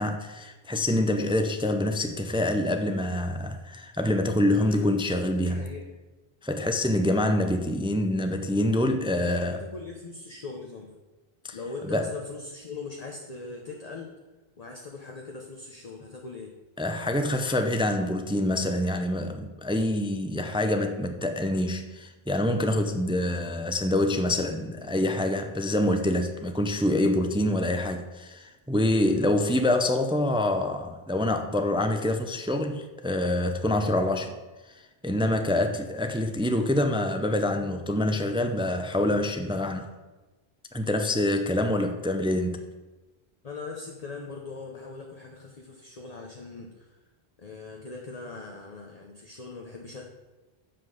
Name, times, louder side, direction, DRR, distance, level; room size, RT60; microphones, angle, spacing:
voice 1, 0.0-5.7 6.4-9.6 11.4-11.6 11.9-12.1 16.8-34.3 35.0-39.9 40.7-42.6, left 1 dB, 10° right, 0.4 m, -26 dB
voice 2, 4.6-4.9 5.4-5.9 9.1-10.9 11.5-14.1 14.6-16.5 43.4-47.1 47.4-50.0, left 4 dB, 40° left, 0.9 m, -40 dB
7.3 x 5.8 x 6.4 m
omnidirectional pair, 1.1 m